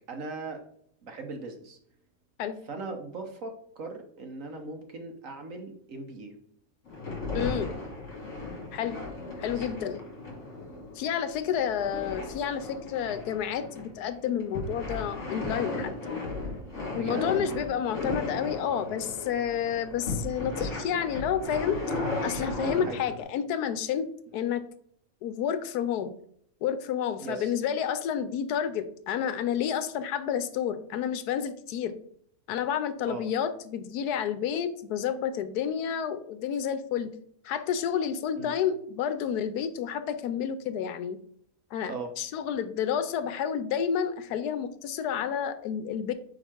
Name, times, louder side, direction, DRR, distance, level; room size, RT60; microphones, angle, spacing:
voice 1, 0.1-0.6 1.0-1.8 2.7-6.3 9.6-9.7 16.9-17.3 22.6-23.0 27.2-27.5 33.1-33.2 38.4-38.5 41.9-42.1, right 3 dB, 60° right, 4 dB, 1.2 m, -38 dB
sound 1, 6.8-23.2, left 2 dB, 50° left, 2.5 m, -36 dB
voice 2, 7.3-7.7 8.7-9.0 9.4-10.0 10.9-16.1 16.9-21.9 22.2-24.1 24.3-24.6 25.2-26.1 26.6-32.0 32.5-37.1 37.4-41.2 41.7-46.1, left 8 dB, 75° left, 11 dB, 1.1 m, -30 dB
4.9 x 4.8 x 4.4 m, 0.66 s
omnidirectional pair, 1.7 m